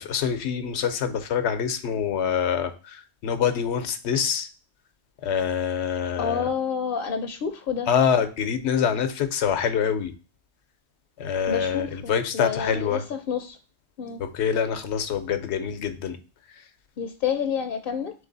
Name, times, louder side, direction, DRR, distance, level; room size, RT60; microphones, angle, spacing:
voice 1, 0.0-4.5 5.2-6.5 7.9-10.1 11.2-13.0 14.2-16.2, left 7 dB, 90° left, 9 dB, 0.9 m, -25 dB
voice 2, 6.2-7.9 11.5-13.6 14.0-14.2 17.0-18.1, left 7 dB, 65° left, 5 dB, 0.7 m, -29 dB
3.8 x 3.3 x 3.8 m, 0.35 s
omnidirectional pair, 1.1 m